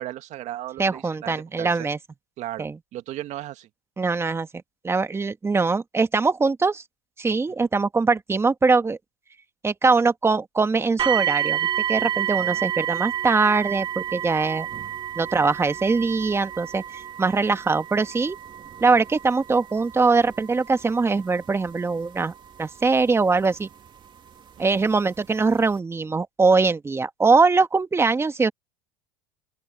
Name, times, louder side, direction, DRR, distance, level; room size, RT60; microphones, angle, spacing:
voice 1, 0.0-1.9 2.4-2.7 2.9-3.7 7.6-7.7 12.4-12.6 17.4-17.6 24.6-24.9, right 14 dB, 50° right, 1.9 m, -36 dB
voice 2, 0.8-2.0 2.6-2.8 4.0-4.5 4.8-6.8 7.2-9.0 9.6-14.7 15.1-18.4 18.8-22.3 22.6-23.7 24.6-28.5, right 4 dB, 15° right, 1.6 m, -22 dB
sound 1, 11.0-23.9 24.7-24.8 25.4-25.5, right 11 dB, 30° right, 2.8 m, -30 dB
open air
hypercardioid pair, 100°, 15 cm